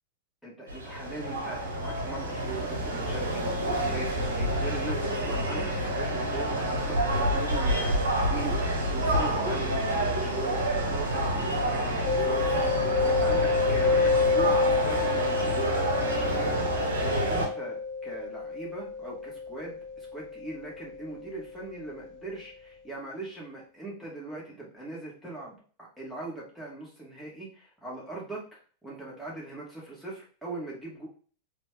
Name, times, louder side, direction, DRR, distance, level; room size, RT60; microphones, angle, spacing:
voice 1, 0.4-12.8 13.0-31.1, right 2 dB, ahead, -5 dB, 2.1 m, -41 dB
sound 1, 0.7-17.5, right 1 dB, 70° right, 1.1 m, -28 dB
Mallet percussion, 12.1-21.6, left 4 dB, 35° left, 0.6 m, -29 dB
4.0 x 3.2 x 3.7 m, 0.41 s
figure-of-eight pair, 90°, 0 cm